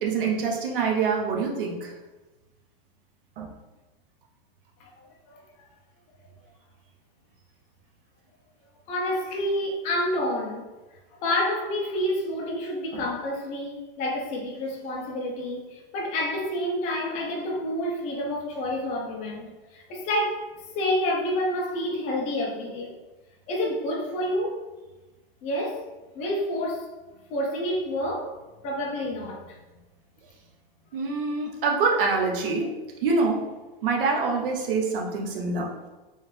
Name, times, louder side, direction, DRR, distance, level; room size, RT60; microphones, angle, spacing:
voice 1, 0.0-1.9 3.4-3.5 12.9-13.0 30.9-32.7 33.0-33.5 33.8-35.9, right 4 dB, 65° right, 0 dB, 1.0 m, -25 dB
voice 2, 8.9-10.6 11.1-22.9 23.5-24.6 25.4-25.8 26.1-26.9 27.3-28.3 28.6-29.6, left 1 dB, 25° left, -1 dB, 0.6 m, -28 dB
3.3 x 3.2 x 3.3 m, 1.1 s
supercardioid pair, 160°, 30 cm